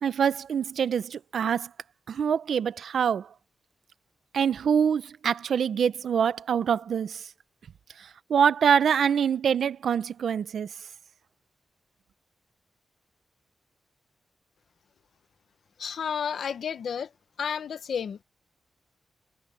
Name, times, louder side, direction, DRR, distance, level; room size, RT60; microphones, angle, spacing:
voice 1, 0.0-1.7 2.1-3.3 4.3-7.3 8.0-10.7, right 7 dB, 75° right, 0.7 m, -25 dB
voice 2, 15.8-17.1 17.4-18.2, left 7 dB, 70° left, 0.9 m, -31 dB
wide cardioid pair, 180°, 0 cm